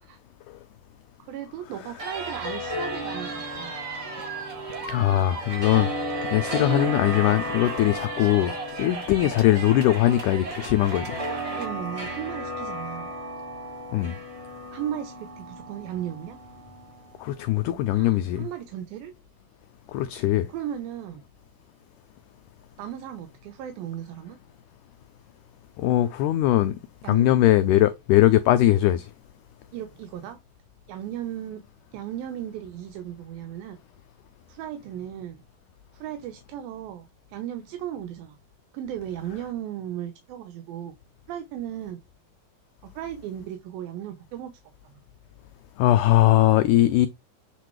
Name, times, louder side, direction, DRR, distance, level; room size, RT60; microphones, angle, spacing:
voice 1, 1.2-3.7 11.5-13.1 14.7-16.4 17.9-19.1 20.5-21.2 22.8-24.4 27.0-27.3 29.7-30.4 30.9-31.6 31.9-33.8 34.5-35.4 35.9-38.4 38.7-40.9 41.3-42.0 42.8-44.5 44.8-45.0, right 11 dB, 80° right, 2.6 m, -36 dB
sound 1, 2.0-17.2, equal, 15° right, 1.1 m, -35 dB
sound 2, 2.0-11.6, right 4 dB, 35° right, 4.3 m, -36 dB
voice 2, 4.9-5.9 6.3-8.5 8.8-11.0 13.9-14.2 17.2-18.5 19.9-20.5 25.8-26.7 27.1-29.1 45.8-47.1, left 14 dB, 90° left, 1.8 m, -20 dB
9.2 x 3.8 x 3.2 m
omnidirectional pair, 4.2 m